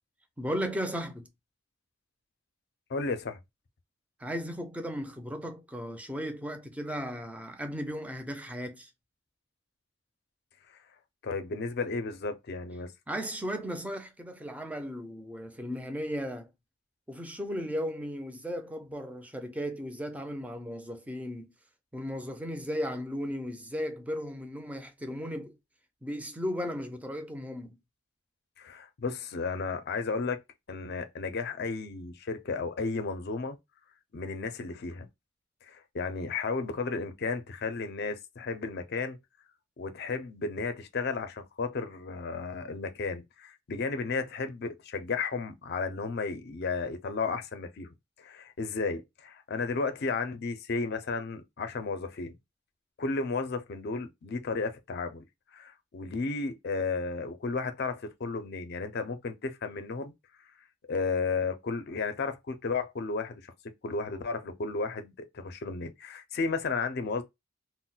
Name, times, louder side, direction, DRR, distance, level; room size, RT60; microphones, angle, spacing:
voice 1, 0.4-1.3 4.2-8.9 13.1-16.5 17.1-21.5 21.9-25.6 26.0-27.8, equal, 10° right, 0.4 m, -36 dB
voice 2, 2.9-3.4 11.2-12.9 28.6-30.4 30.7-33.6 34.1-35.1 35.6-39.2 39.8-47.9 48.2-52.4 53.0-55.2 55.5-60.1 60.9-63.4 63.8-67.2, left 4 dB, 55° left, 0.5 m, -33 dB
2.2 x 2.1 x 3.8 m
head